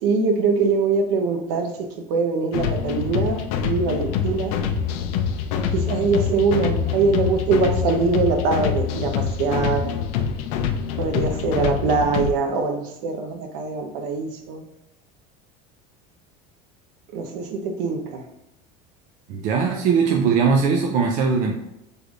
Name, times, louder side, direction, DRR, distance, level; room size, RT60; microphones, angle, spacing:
voice 1, 0.0-1.7 2.1-3.4 3.6-4.5 5.7-9.9 11.0-14.6 17.1-18.2, right 4 dB, 60° right, 4 dB, 0.8 m, -23 dB
sound 1, 2.5-12.3, left 7 dB, 65° left, 0.5 m, -25 dB
voice 2, 19.3-21.6, right 5 dB, 45° right, 2 dB, 0.4 m, -20 dB
6.2 x 3.3 x 2.4 m, 0.88 s
cardioid pair, 165°, 19 cm